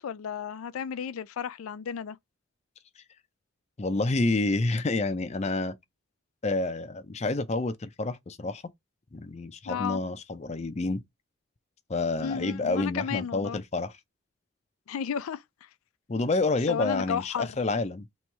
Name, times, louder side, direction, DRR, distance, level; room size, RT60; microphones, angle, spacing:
voice 1, 0.0-2.2 9.7-10.0 12.2-13.6 14.9-15.4 16.7-17.5, left 7 dB, 90° left, 0.4 m, -33 dB
voice 2, 3.8-5.8 6.4-8.6 9.1-11.0 11.9-14.0 16.1-18.1, left 3 dB, 30° left, 0.4 m, -28 dB
3.1 x 3.0 x 4.5 m
head